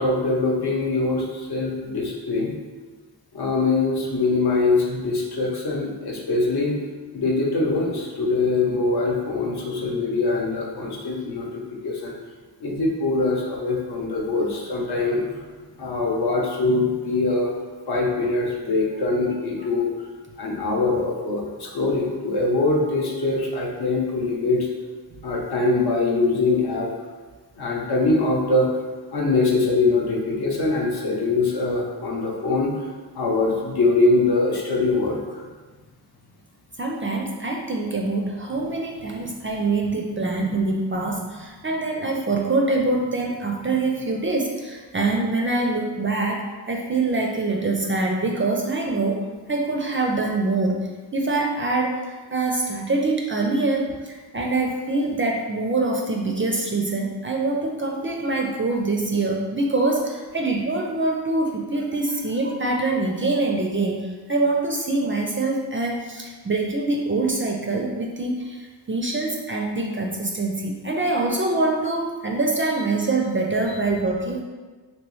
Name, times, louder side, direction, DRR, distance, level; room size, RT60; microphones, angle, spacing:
voice 1, 0.0-2.5 3.3-6.8 7.1-12.1 12.6-15.4 15.8-17.5 17.9-19.9 20.4-24.7 25.2-26.9 27.6-28.7 29.1-32.7 33.1-35.4, left 3 dB, 60° left, -2 dB, 0.8 m, -23 dB
voice 2, 36.8-74.4, right 2 dB, 30° right, 0 dB, 0.4 m, -24 dB
3.0 x 2.9 x 3.0 m, 1.4 s
wide cardioid pair, 85°, 43 cm